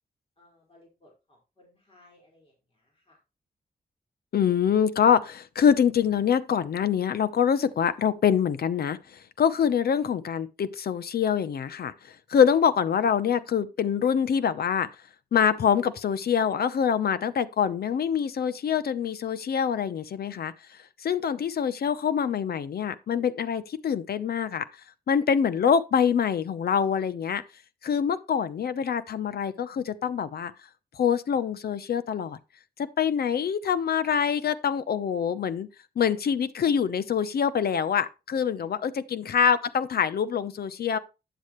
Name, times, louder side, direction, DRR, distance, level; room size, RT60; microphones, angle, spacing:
voice 1, 0.4-3.2 38.6-39.0, left 2 dB, 35° left, 4.9 m, -59 dB
voice 2, 4.3-14.9 15.3-24.6 25.1-27.4 27.8-30.5 30.9-32.4 32.8-35.7 36.0-41.0, left 7 dB, 75° left, 0.8 m, -25 dB
10.0 x 7.5 x 3.1 m
cardioid pair, 85°, 16 cm